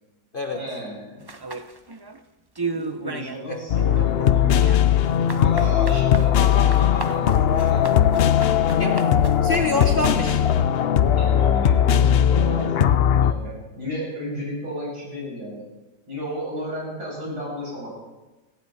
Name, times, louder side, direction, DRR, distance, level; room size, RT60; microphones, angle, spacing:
voice 1, 0.5-1.2 2.7-4.6 5.3-8.1 11.1-15.6 16.1-18.0, equal, 70° right, -5 dB, 8.3 m, -33 dB
sound 1, 1.3-2.2 2.5-3.4 3.7-10.0, right 4 dB, 35° right, 0.4 m, -35 dB
sound 2, 3.7-13.3, left 9 dB, 80° left, 0.5 m, -19 dB
voice 2, 8.7-10.4, left 3 dB, 40° left, 4 dB, 1.0 m, -26 dB
18.0 x 16.0 x 4.2 m, 1.1 s
omnidirectional pair, 1.8 m